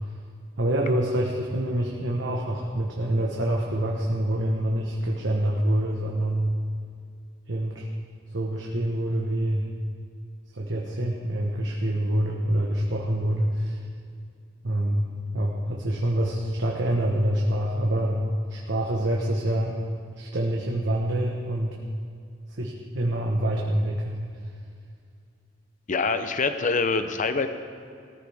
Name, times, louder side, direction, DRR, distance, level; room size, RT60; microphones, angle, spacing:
voice 1, 0.6-6.5 7.5-7.8 8.3-9.6 10.5-13.8 14.6-18.2 18.5-19.7 20.2-21.8 22.6-24.2, right 1 dB, 70° right, -1 dB, 1.3 m, -26 dB
voice 2, 25.9-27.5, left 4 dB, 40° left, 9 dB, 0.7 m, -25 dB
17.5 x 14.0 x 3.6 m, 2.3 s
head